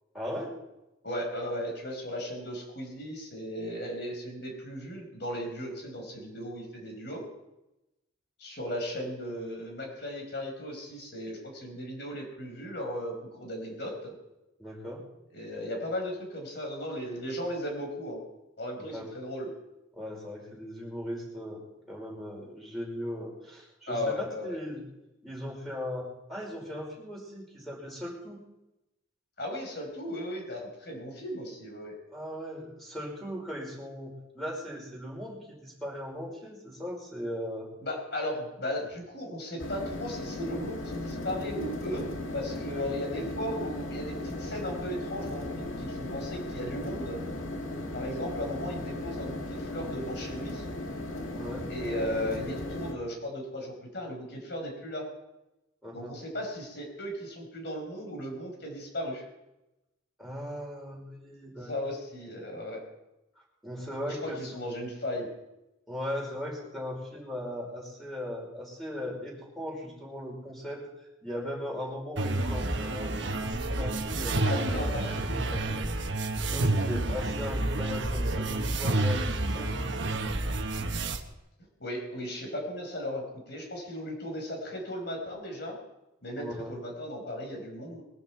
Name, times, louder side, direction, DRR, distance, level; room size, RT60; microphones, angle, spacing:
voice 1, 0.1-0.5 14.6-15.0 18.8-19.1 19.9-21.6 21.9-24.8 25.2-28.4 32.1-37.7 51.3-51.7 55.8-56.2 60.2-61.7 63.6-64.4 65.9-70.9 71.2-74.7 76.5-80.3 86.4-86.8, equal, ahead, -3 dB, 5.2 m, -38 dB
voice 2, 1.0-7.2 8.4-14.1 15.3-18.2 18.6-19.5 23.9-24.6 29.4-31.9 37.8-42.1 42.3-47.2 47.9-50.6 51.7-55.0 55.9-59.2 61.7-62.8 64.1-65.3 74.4-75.7 81.8-85.7 86.2-88.0, left 1 dB, 55° left, 2 dB, 5.1 m, -36 dB
sound 1, 39.6-52.9, left 1 dB, 85° left, 2.0 m, -37 dB
sound 2, 72.2-81.2, right 2 dB, 60° right, 1.3 m, -29 dB
22.0 x 13.0 x 4.6 m, 0.94 s
head